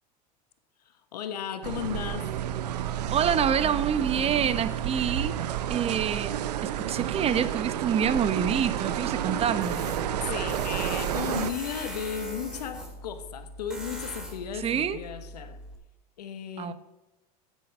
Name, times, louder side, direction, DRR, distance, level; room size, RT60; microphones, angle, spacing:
voice 1, 1.1-2.4 10.3-15.6 16.2-16.7, left 8 dB, 90° left, 1.1 m, -35 dB
sound 1, 1.6-11.5, right 10 dB, 85° right, 0.7 m, -30 dB
voice 2, 3.1-6.4 6.6-9.8 14.5-15.0 16.6-16.7, right 8 dB, 30° right, 0.8 m, -27 dB
Tools, 9.6-15.8, equal, 5° right, 2.4 m, -40 dB
9.4 x 8.5 x 5.5 m
hypercardioid pair, 100°, 20 cm